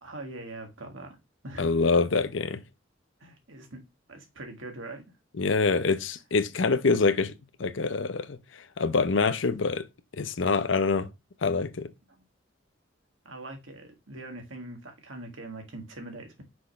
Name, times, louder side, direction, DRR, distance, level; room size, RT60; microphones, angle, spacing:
voice 1, 0.0-1.2 1.4-1.7 3.2-3.8 4.1-5.1 12.1-12.2 13.2-16.4, right 2 dB, 85° right, 2.0 m, -42 dB
voice 2, 1.6-2.6 5.4-7.3 7.6-9.8 10.2-11.1 11.4-11.9, left 4 dB, 70° left, 0.7 m, -25 dB
6.1 x 5.7 x 3.2 m
head